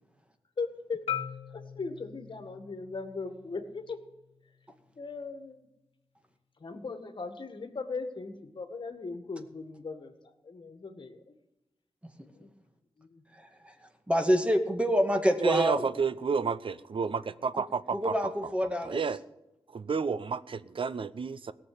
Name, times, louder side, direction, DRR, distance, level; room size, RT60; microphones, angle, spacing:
voice 1, 0.6-1.0 1.5-4.0 5.0-5.7 6.6-11.2 12.3-12.5 13.0-13.2, left 4 dB, 55° left, 7 dB, 1.9 m, -38 dB
Marimba xylophone, 1.1-5.2, left 10 dB, 75° left, 1.1 m, -41 dB
voice 2, 13.3-13.7 14.1-15.9 17.5-19.0, equal, 10° right, 5 dB, 2.1 m, -27 dB
voice 3, 15.4-18.1 18.8-19.2 19.7-21.5, right 5 dB, 60° right, 16 dB, 0.7 m, -30 dB
17.0 x 7.2 x 8.8 m, 0.97 s
cardioid pair, 60°, 10 cm